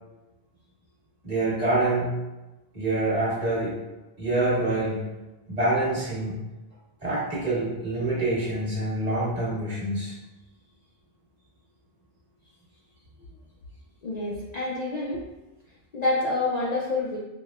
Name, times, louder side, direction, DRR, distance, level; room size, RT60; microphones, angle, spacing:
voice 1, 1.2-2.1 2.7-3.7 4.2-5.0 5.5-6.3 7.0-10.1, right 2 dB, 35° right, -10 dB, 1.4 m, -26 dB
voice 2, 14.0-15.3 15.9-17.2, left 2 dB, 60° left, -5 dB, 0.4 m, -27 dB
4.8 x 2.1 x 2.3 m, 1.0 s
omnidirectional pair, 1.2 m